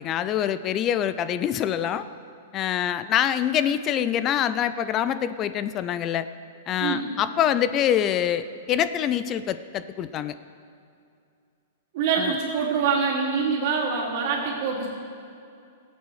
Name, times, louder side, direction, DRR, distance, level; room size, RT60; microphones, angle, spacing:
voice 1, 0.0-2.1 2.5-6.3 6.7-10.3 12.2-12.4, left 10 dB, 25° left, 13 dB, 0.3 m, -25 dB
voice 2, 11.9-14.9, right 5 dB, 45° right, -4 dB, 3.1 m, -25 dB
17.5 x 8.3 x 4.8 m, 2.5 s
hypercardioid pair, 160°, 0 cm